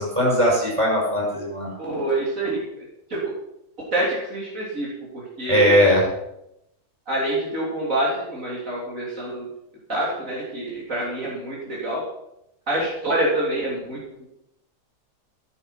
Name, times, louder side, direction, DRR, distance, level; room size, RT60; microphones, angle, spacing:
voice 1, 0.0-1.7 5.5-6.1, equal, 15° right, -3 dB, 5.8 m, -19 dB
voice 2, 1.8-2.6 3.1-3.3 3.9-5.7 7.1-9.5 9.9-12.0 12.7-14.0, right 1 dB, 50° right, -5 dB, 3.7 m, -26 dB
14.5 x 9.8 x 5.8 m, 0.83 s
omnidirectional pair, 1.8 m